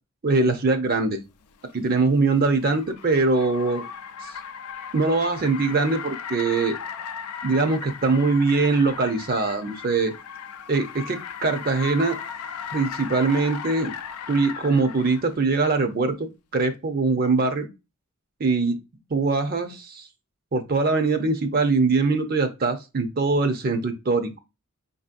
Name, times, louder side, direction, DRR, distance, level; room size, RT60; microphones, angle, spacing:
voice 1, 0.2-1.2 1.7-3.8 4.9-6.8 7.4-10.1 10.7-12.2 12.7-13.9 14.3-16.3 16.5-17.7 18.4-18.8 19.1-20.1 20.5-24.4, right 3 dB, 45° right, 7 dB, 0.6 m, -22 dB
Car, 1.4-15.4, left 7 dB, 90° left, 0.4 m, -37 dB
5.3 x 2.7 x 2.5 m, 0.25 s
head